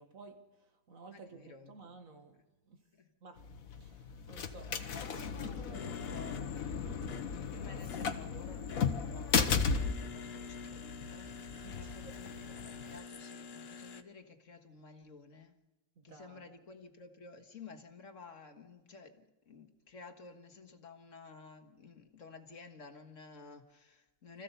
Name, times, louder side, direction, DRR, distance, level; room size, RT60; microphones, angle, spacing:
voice 1, 0.0-2.4 2.7-2.8 3.2-3.4 3.8-4.8 5.1-6.2 11.5-12.1 16.0-16.6, right 4 dB, 75° right, 2.2 m, -55 dB
voice 2, 1.1-1.8 2.9-3.1 5.7-15.6 16.0-24.4, left 4 dB, 65° left, 1.9 m, -53 dB
sound 1, 3.4-13.0, left 6 dB, 90° left, 1.6 m, -36 dB
sound 2, 5.7-14.0, left 5 dB, 50° left, 1.1 m, -48 dB
26.0 x 15.0 x 6.8 m
omnidirectional pair, 1.4 m